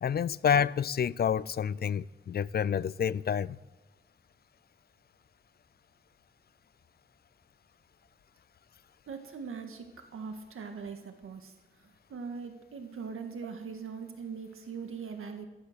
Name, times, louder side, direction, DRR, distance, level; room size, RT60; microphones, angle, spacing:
voice 1, 0.0-3.6, left 8 dB, 50° left, 0.4 m, -28 dB
voice 2, 9.1-9.9 10.1-11.5 11.8-15.5, right 5 dB, 90° right, 1.7 m, -41 dB
15.0 x 13.0 x 6.7 m
wide cardioid pair, 125°, 21 cm